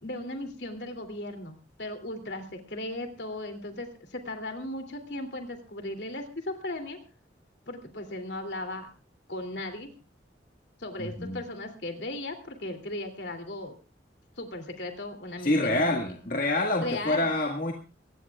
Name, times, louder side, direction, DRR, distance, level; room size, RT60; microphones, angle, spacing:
voice 1, 0.0-7.0 7.7-8.9 9.3-9.9 10.8-13.8 14.4-15.9 16.8-17.3, left 1 dB, 65° left, 5 dB, 2.9 m, -37 dB
voice 2, 11.0-11.4 15.4-17.7, left 2 dB, 50° left, 1 dB, 1.8 m, -27 dB
23.5 x 18.5 x 2.4 m, 0.32 s
head